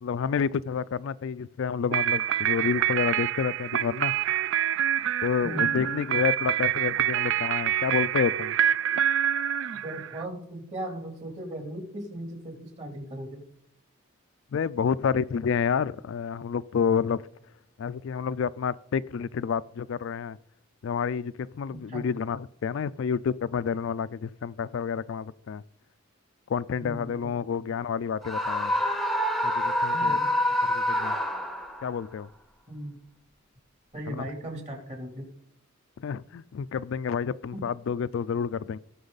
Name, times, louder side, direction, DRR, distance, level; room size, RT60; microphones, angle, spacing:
voice 1, 0.0-4.1 5.2-8.5 14.5-17.2 17.8-20.4 20.8-25.6 26.5-28.7 29.4-30.2 30.7-31.2 31.8-32.3 34.1-34.2 36.0-38.8, left 6 dB, 65° left, 0.3 m, -29 dB
sound 1, 1.9-10.2, right 10 dB, 65° right, 0.4 m, -26 dB
voice 2, 9.8-13.4 21.7-22.0 26.8-27.3 27.6-27.7 29.9-30.2 32.7-33.0 33.9-35.3 37.5-37.6, right 1 dB, 35° right, 2.7 m, -37 dB
Screaming, 28.2-31.9, left 1 dB, ahead, 0.8 m, -26 dB
18.5 x 6.2 x 4.0 m
head